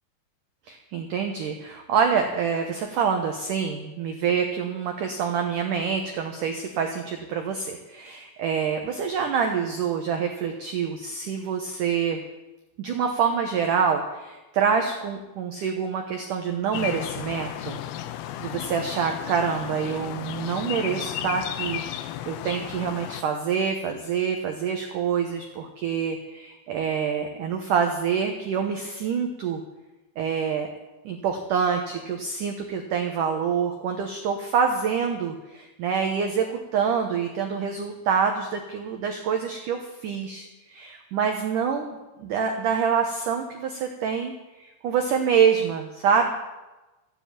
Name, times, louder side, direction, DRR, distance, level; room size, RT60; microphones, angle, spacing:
voice 1, 0.7-12.2 12.8-17.8 18.4-29.6 30.2-30.7 31.1-44.3 44.6-46.3, right 6 dB, 80° right, 4 dB, 1.9 m, -26 dB
sound 1, 16.7-23.2, left 12 dB, 85° left, 2.2 m, -34 dB
14.5 x 9.8 x 8.8 m, 1.1 s
omnidirectional pair, 5.4 m